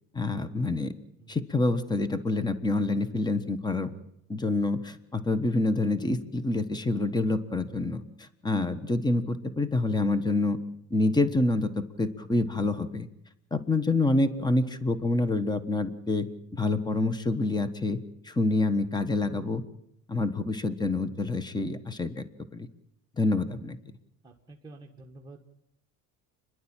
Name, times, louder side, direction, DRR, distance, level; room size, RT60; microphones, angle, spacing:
voice 1, 0.1-0.9 1.3-3.9 4.3-10.6 10.9-13.1 13.5-16.3 16.5-18.0 18.2-19.6 20.1-22.2 22.5-22.7 23.2-23.8, left 2 dB, 10° left, 13 dB, 1.3 m, -27 dB
voice 2, 24.2-25.4, right 2 dB, 15° right, -1 dB, 1.8 m, -48 dB
29.0 x 11.5 x 9.0 m, 0.79 s
cardioid pair, 125°, 33 cm